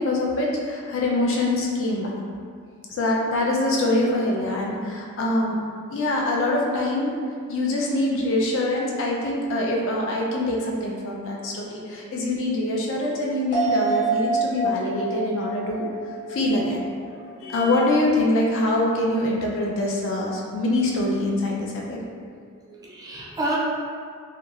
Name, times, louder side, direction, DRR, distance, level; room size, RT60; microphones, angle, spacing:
voice 1, 0.0-2.1 2.9-5.6 5.9-7.1 7.5-15.8 16.3-16.8 17.4-22.0, left 1 dB, 65° left, -2 dB, 0.4 m, -24 dB
sound 1, 13.5-17.2 17.6-17.7, right 3 dB, 25° left, 0.7 m, -27 dB
voice 2, 22.3-23.6, right 1 dB, 15° right, -5 dB, 0.4 m, -31 dB
2.9 x 2.3 x 2.3 m, 2.1 s
head